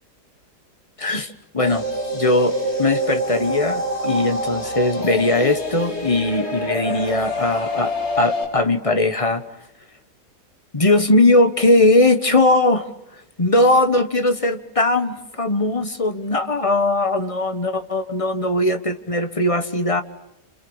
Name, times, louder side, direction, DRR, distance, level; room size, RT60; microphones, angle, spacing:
voice 1, 1.0-9.4 10.7-20.0, left 2 dB, 20° left, 9 dB, 1.2 m, -19 dB
sound 1, 1.6-8.4, equal, 40° left, 4.8 m, -26 dB
28.0 x 27.5 x 7.2 m, 0.78 s
omnidirectional pair, 1.8 m